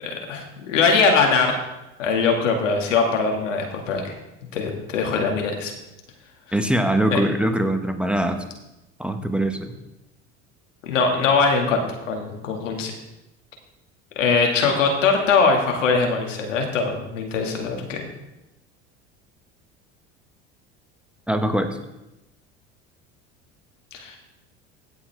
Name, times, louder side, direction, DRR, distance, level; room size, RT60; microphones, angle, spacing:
voice 1, 0.0-1.5 2.0-4.1 4.5-5.7 7.1-7.2 10.8-12.9 14.2-18.1 23.9-24.1, left 4 dB, 85° left, 2 dB, 2.1 m, -21 dB
voice 2, 6.5-8.4 9.0-9.7 21.3-21.8, right 1 dB, 5° right, 6 dB, 1.3 m, -22 dB
16.5 x 7.1 x 3.5 m, 0.94 s
hypercardioid pair, 75°, 37 cm